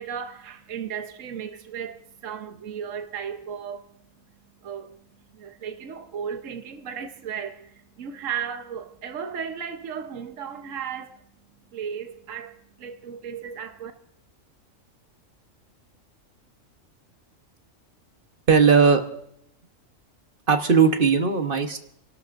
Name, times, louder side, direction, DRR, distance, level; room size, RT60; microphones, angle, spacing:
voice 1, 0.0-3.9 4.6-5.0 5.3-11.2 11.7-13.9, right 7 dB, 75° right, 1.3 m, -35 dB
voice 2, 18.5-19.0 20.5-21.8, right 5 dB, 45° right, 1.3 m, -18 dB
30.0 x 12.5 x 2.6 m
omnidirectional pair, 1.4 m